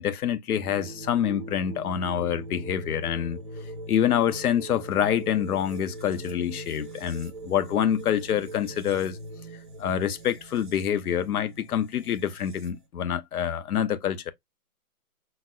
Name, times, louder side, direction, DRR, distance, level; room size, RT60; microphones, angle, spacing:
voice 1, 0.0-3.4 3.9-9.2 9.8-14.3, left 9 dB, 75° left, 0.6 m, -26 dB
sound 1, 0.6-12.9, right 1 dB, 35° right, 0.6 m, -41 dB
3.9 x 2.1 x 2.2 m
hypercardioid pair, 165°, 45 cm